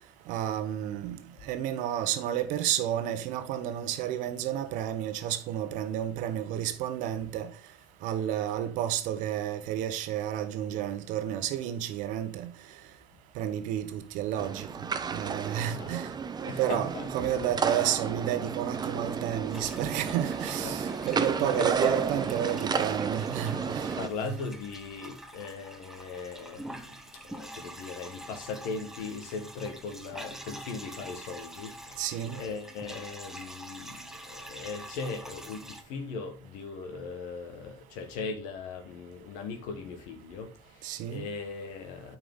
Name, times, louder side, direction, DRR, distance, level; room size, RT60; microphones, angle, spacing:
voice 1, 0.3-1.2 1.4-7.5 8.0-12.5 13.4-14.7 15.1-16.1 16.6-23.9 24.2-24.3 32.0-32.4 40.8-41.3, right 11 dB, 70° right, 1.0 m, -31 dB
sound 1, 14.4-24.1, right 6 dB, 30° right, 0.8 m, -32 dB
voice 2, 15.6-16.2 16.5-17.4 19.8-20.0 20.6-21.9 23.6-42.2, left 4 dB, 75° left, 1.3 m, -39 dB
sound 2, 19.5-35.8, right 1 dB, 5° right, 1.2 m, -46 dB
8.9 x 4.7 x 3.7 m
hypercardioid pair, 70°, 14 cm